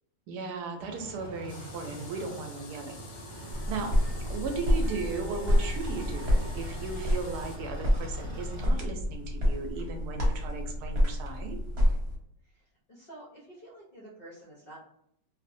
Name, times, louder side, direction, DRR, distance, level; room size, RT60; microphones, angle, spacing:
voice 1, 0.3-3.0 3.7-3.9 4.3-11.6, right 4 dB, 75° right, 4 dB, 1.1 m, -36 dB
sound 1, 0.8-8.7, right 1 dB, 30° right, 0.5 m, -43 dB
sound 2, 1.5-7.6, left 4 dB, 90° left, 1.3 m, -51 dB
sound 3, 3.5-12.2, left 1 dB, 45° right, 1.0 m, -28 dB
voice 2, 12.4-14.8, right 1 dB, 65° left, -5 dB, 0.5 m, -49 dB
2.9 x 2.1 x 2.5 m, 0.75 s
omnidirectional pair, 1.8 m